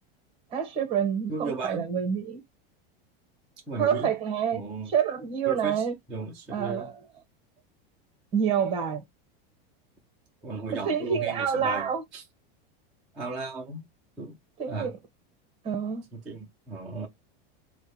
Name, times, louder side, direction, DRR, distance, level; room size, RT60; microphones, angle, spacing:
voice 1, 0.5-2.4 3.8-4.6 4.9-5.9 6.5-6.9 8.3-9.0 10.8-12.0 14.6-14.9 15.6-16.0, right 7 dB, 20° right, 1.0 m, -27 dB
voice 2, 1.3-1.9 3.7-4.1 4.5-4.9 5.5-6.9 10.4-12.2 13.1-13.8 14.2-14.4 14.7-14.9 16.1-17.1, right 3 dB, 5° right, 0.3 m, -35 dB
4.4 x 2.1 x 4.6 m
supercardioid pair, 180°, 30 cm